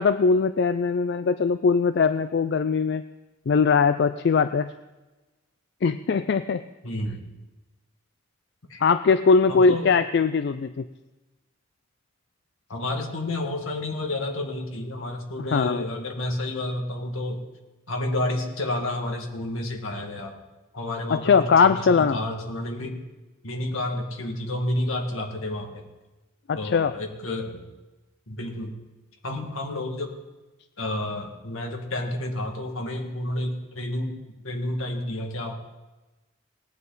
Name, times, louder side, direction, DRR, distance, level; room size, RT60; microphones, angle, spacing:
voice 1, 0.0-3.0 3.5-4.7 5.8-6.6 8.8-10.8 15.5-15.8 21.1-22.2 26.5-26.9, left 5 dB, 50° left, 11 dB, 0.3 m, -21 dB
voice 2, 6.8-7.2 8.7-8.8 9.5-9.9 12.7-17.4 17.9-20.4 20.7-23.0 23.4-25.8 26.5-27.7 28.3-28.7 29.2-30.1 30.8-34.1 34.4-35.5, left 1 dB, 75° left, 3 dB, 2.0 m, -30 dB
18.5 x 9.5 x 4.0 m, 1.1 s
head